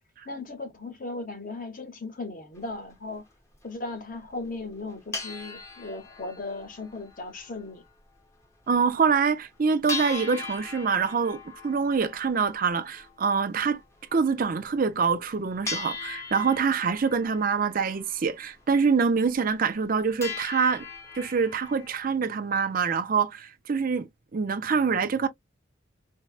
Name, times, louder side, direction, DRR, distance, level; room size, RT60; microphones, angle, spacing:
voice 1, 0.2-3.3 3.6-7.8, left 3 dB, 45° left, 1.1 m, -37 dB
sound 1, 2.5-2.7 3.3-3.4 3.5-3.7 4.4-4.5 4.8-7.9 8.1-8.2 8.7-8.8 9.1-9.2 9.9-14.4 15.1-15.3 15.7-18.6 19.0-19.1 19.5-19.9 20.2-22.1, left 4 dB, 15° left, 0.8 m, -39 dB
voice 2, 8.7-13.8 14.1-20.9 21.2-25.3, right 5 dB, 45° right, 0.5 m, -25 dB
4.3 x 2.1 x 2.3 m
head